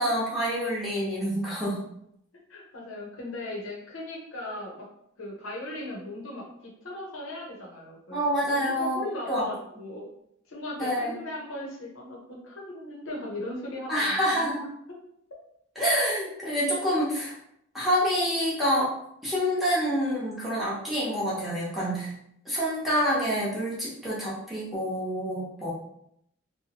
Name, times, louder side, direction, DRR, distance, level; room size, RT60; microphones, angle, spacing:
voice 1, 0.0-1.8 8.1-9.5 10.8-11.1 13.9-14.6 15.8-17.4 17.7-18.9 19.2-22.1 22.4-25.7, equal, ahead, -9 dB, 0.9 m, -27 dB
voice 2, 2.5-4.9 5.2-8.2 8.5-10.1 10.5-14.5, left 1 dB, 85° left, -2 dB, 0.8 m, -38 dB
2.8 x 2.1 x 2.9 m, 0.75 s
head